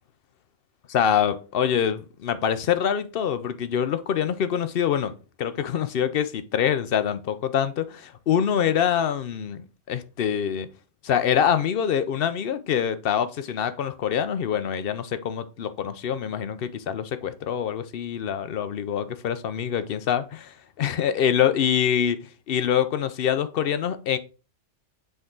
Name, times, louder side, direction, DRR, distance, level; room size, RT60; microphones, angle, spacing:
voice 1, 0.9-5.1 5.4-10.7 11.0-22.2 22.5-24.2, left 8 dB, 60° left, 0.8 m, -25 dB
7.9 x 3.6 x 3.8 m
omnidirectional pair, 1.2 m